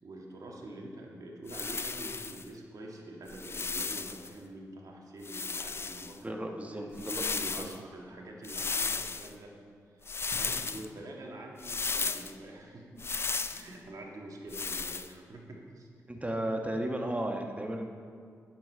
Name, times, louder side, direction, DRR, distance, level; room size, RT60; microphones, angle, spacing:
voice 1, 0.0-6.9 7.4-9.5 9.9-10.0 10.4-13.1 13.5-15.9, right 1 dB, 60° right, -1 dB, 1.7 m, -46 dB
sound 1, 1.5-2.4 3.3-4.3 5.2-6.2 6.9-7.8 8.4-9.3 10.1-10.9 11.6-12.3 13.0-13.7 14.5-15.1, left 4 dB, 40° left, 0.4 m, -34 dB
voice 2, 6.2-7.7 10.3-10.4 16.1-17.9, right 1 dB, 20° right, 3 dB, 1.2 m, -34 dB
9.3 x 7.3 x 4.6 m, 2.2 s
cardioid pair, 55°, 7 cm